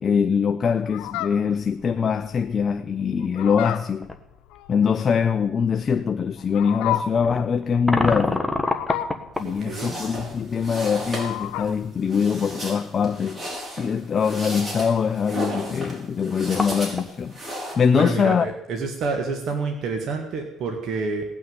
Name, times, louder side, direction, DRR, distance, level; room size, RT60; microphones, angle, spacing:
voice 1, 0.0-4.1 4.7-8.5 9.4-13.5 13.8-17.4 17.8-18.5, left 6 dB, 35° left, 0.6 m, -23 dB
Fowl, 0.8-11.9, left 12 dB, 90° left, 1.0 m, -34 dB
sound 1, 4.0-4.2 5.0-5.1 7.2-9.5 12.0-12.1 12.4-12.5 15.9-16.0 16.2-17.1, left 2 dB, 5° left, 1.3 m, -26 dB
sound 2, 9.4-17.7, equal, 25° right, 5.8 m, -35 dB
voice 2, 9.4-10.0 17.9-21.3, right 4 dB, 55° right, 2.0 m, -28 dB
18.0 x 6.3 x 9.7 m
cardioid pair, 125°, 0 cm